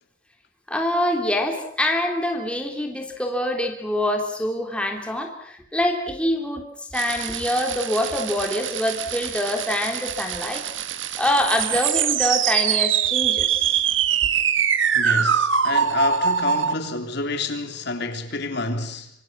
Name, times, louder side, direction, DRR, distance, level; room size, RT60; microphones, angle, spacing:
voice 1, 0.7-6.7 6.9-10.6 11.2-13.8, left 1 dB, 5° left, 3.4 m, -25 dB
sound 1, 6.9-16.7, right 8 dB, 70° right, 1.6 m, -23 dB
voice 2, 14.9-19.1, left 2 dB, 55° left, 3.4 m, -28 dB
26.5 x 25.5 x 7.5 m
head